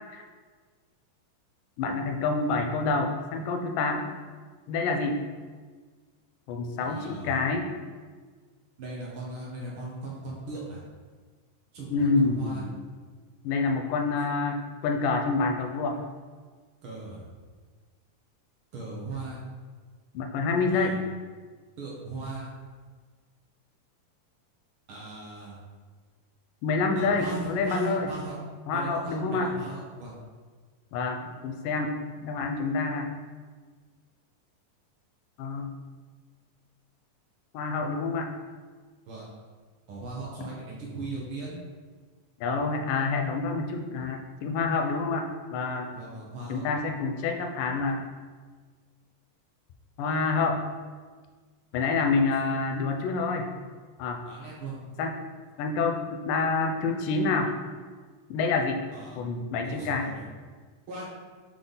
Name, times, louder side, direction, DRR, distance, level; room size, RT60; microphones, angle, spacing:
voice 1, 1.8-4.0 4.7-5.2 6.5-7.7 11.9-12.7 13.4-16.0 20.1-21.0 26.6-28.1 28.7-29.5 30.9-32.0 32.2-33.1 35.4-35.7 37.5-38.3 42.4-45.9 46.5-48.0 50.0-50.6 51.7-53.5 54.0-54.2 55.0-55.1 55.6-57.5 58.3-58.8 59.2-60.1, left 4 dB, 80° left, 4 dB, 2.2 m, -27 dB
voice 2, 6.8-7.4 8.8-10.8 11.7-12.6 16.8-17.3 18.7-19.4 20.7-21.0 21.8-22.5 24.9-25.6 26.9-28.4 28.7-30.1 39.1-39.3 39.9-41.6 45.9-46.7 54.3-54.7 58.9-59.2 59.6-60.2 60.9-61.1, right 3 dB, 60° right, -5 dB, 1.4 m, -38 dB
7.7 x 3.6 x 3.9 m, 1.5 s
omnidirectional pair, 3.9 m